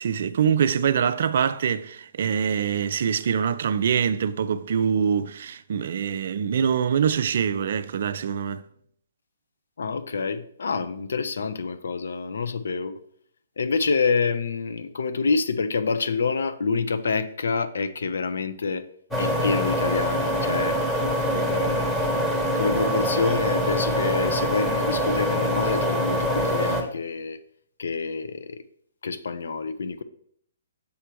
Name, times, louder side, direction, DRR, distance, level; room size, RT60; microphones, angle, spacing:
voice 1, 0.0-8.6 21.3-21.6, right 7 dB, 60° right, 0.3 m, -24 dB
voice 2, 9.8-13.0 13.6-18.8 19.2-20.8 21.5-22.1 22.6-27.4 27.8-28.6 29.0-30.0, left 4 dB, 70° left, 0.5 m, -27 dB
sound 1, 19.1-26.8, equal, 5° left, 1.0 m, -24 dB
6.9 x 3.4 x 4.4 m
figure-of-eight pair, 130°, 0 cm